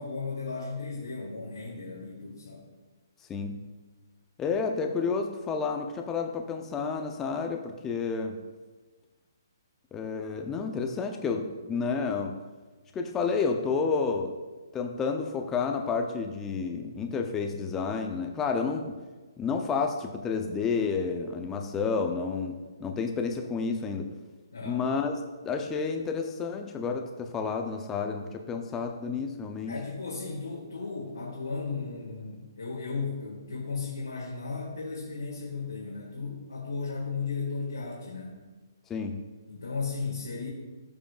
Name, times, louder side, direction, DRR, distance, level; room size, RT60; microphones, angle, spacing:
voice 1, 0.0-2.7 24.5-24.8 29.7-38.5 39.5-40.5, left 4 dB, 80° left, -5 dB, 2.0 m, -35 dB
voice 2, 3.3-3.7 4.4-8.4 9.9-12.4 12.9-14.3 14.7-19.0 19.4-24.1 24.6-25.2 25.4-29.8 38.9-39.2, left 5 dB, 15° left, 4 dB, 0.6 m, -30 dB
14.0 x 4.8 x 2.5 m, 1.3 s
figure-of-eight pair, 135°, 2 cm